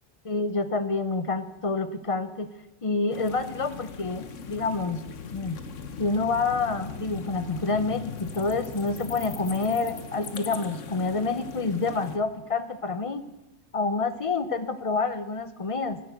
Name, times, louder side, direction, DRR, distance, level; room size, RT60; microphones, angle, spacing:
voice 1, 0.2-2.5 2.8-5.0 5.3-5.6 6.0-13.2 13.7-16.0, left 3 dB, 30° left, 11 dB, 0.8 m, -28 dB
sound 1, 3.1-12.2, left 5 dB, 85° left, 1.4 m, -39 dB
13.0 x 11.5 x 8.2 m, 0.99 s
omnidirectional pair, 1.3 m